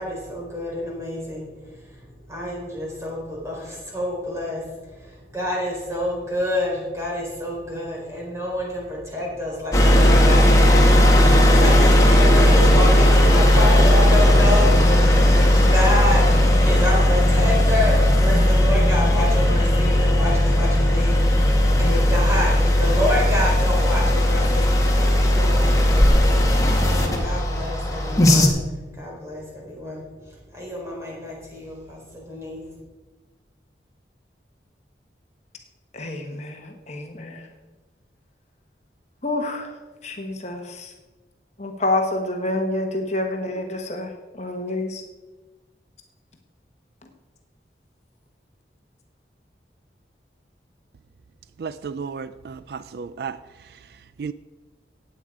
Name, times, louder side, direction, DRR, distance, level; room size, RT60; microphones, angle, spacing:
voice 1, 0.0-1.5 1.7-1.8 2.3-4.6 5.0-14.8 15.1-26.2 26.8-28.6 29.0-30.0 30.5-32.6, left 1 dB, 15° right, 4.1 m, -28 dB
sound 1, 9.7-28.5, left 1 dB, 20° left, 1.7 m, -16 dB
voice 2, 35.9-37.5 39.2-39.7 40.0-40.9 41.6-45.0, left 2 dB, 40° left, 1.2 m, -28 dB
voice 3, 51.6-53.4 54.2-54.3, right 5 dB, 60° right, 0.4 m, -33 dB
16.0 x 8.8 x 4.9 m
head